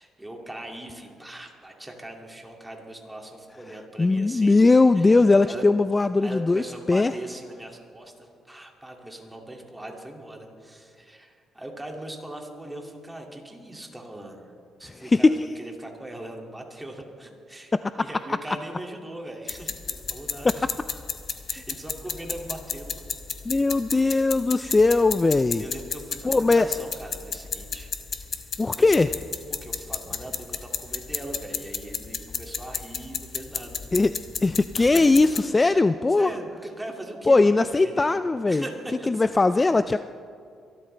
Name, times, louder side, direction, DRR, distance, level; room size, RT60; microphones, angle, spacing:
voice 1, 0.0-4.6 4.9-5.1 5.4-5.6 6.2-14.5 14.8-20.7 21.5-23.1 24.6-24.8 25.6-27.9 28.3-29.0 29.5-33.9 34.8-35.1 35.6-35.8 36.2-38.2 38.5-39.2, right 1 dB, 10° right, 1 dB, 2.4 m, -40 dB
voice 2, 4.0-7.1 15.0-15.4 23.5-25.6 26.2-26.7 28.6-29.1 33.9-34.1 34.4-36.3 37.3-38.6 39.1-40.0, left 3 dB, 25° left, 12 dB, 0.3 m, -20 dB
sound 1, 19.5-35.4, left 6 dB, 50° left, 1.1 m, -33 dB
24.0 x 12.5 x 3.3 m, 2.3 s
cardioid pair, 90°, 0 cm